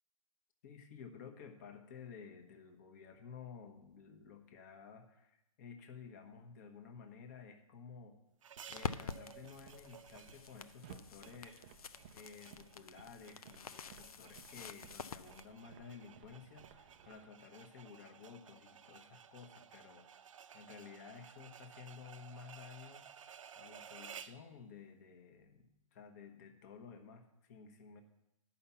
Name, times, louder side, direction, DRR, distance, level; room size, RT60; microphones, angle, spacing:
voice 1, 0.6-8.2 8.7-11.7 12.1-20.3 20.5-23.1 23.6-28.0, left 6 dB, 30° left, 7 dB, 1.0 m, -54 dB
sound 1, 8.4-24.5, right 8 dB, 60° right, 0.6 m, -56 dB
sound 2, 8.7-15.4, left 6 dB, 85° left, 0.6 m, -47 dB
sound 3, 9.3-17.3, right 8 dB, 20° right, 0.4 m, -60 dB
10.5 x 5.7 x 7.1 m, 0.88 s
hypercardioid pair, 160°, 18 cm